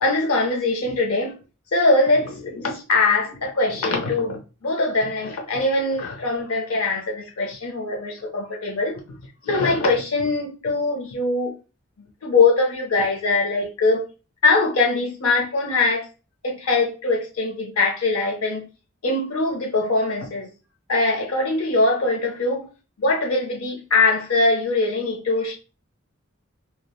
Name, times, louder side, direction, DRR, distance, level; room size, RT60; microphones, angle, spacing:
voice 1, 0.0-1.3 1.7-11.5 12.2-14.1 14.4-16.1 16.4-18.7 19.0-20.5 20.9-22.7 23.0-25.5, left 3 dB, 80° left, 0.6 m, -22 dB
3.1 x 2.1 x 2.3 m
head